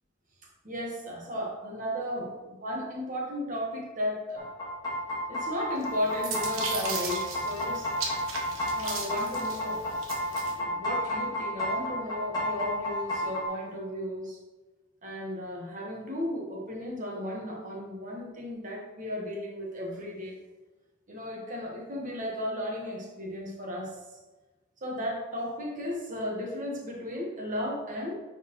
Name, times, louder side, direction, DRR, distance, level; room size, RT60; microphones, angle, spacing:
voice 1, 0.4-4.5 5.3-7.9 8.7-9.8 10.5-14.4 15.0-20.4 21.1-24.0 24.8-28.2, left 1 dB, 40° right, -1 dB, 1.4 m, -35 dB
sound 1, 4.4-13.5, left 1 dB, 20° left, 2.3 m, -31 dB
sound 2, 5.8-10.6, right 5 dB, 85° right, 1.0 m, -37 dB
9.8 x 4.3 x 3.1 m, 1.2 s
head